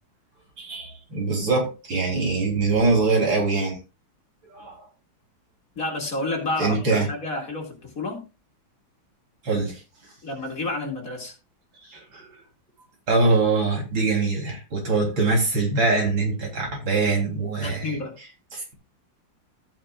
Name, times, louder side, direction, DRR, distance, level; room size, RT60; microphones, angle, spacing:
voice 1, 0.6-3.8 4.5-4.8 6.6-7.1 9.4-9.8 11.8-12.3 13.1-18.7, right 3 dB, 75° right, 0 dB, 4.1 m, -23 dB
voice 2, 5.8-8.3 10.2-11.3 17.6-18.1, left 2 dB, 45° left, 1 dB, 2.6 m, -30 dB
13.5 x 9.0 x 2.4 m, 0.30 s
omnidirectional pair, 2.2 m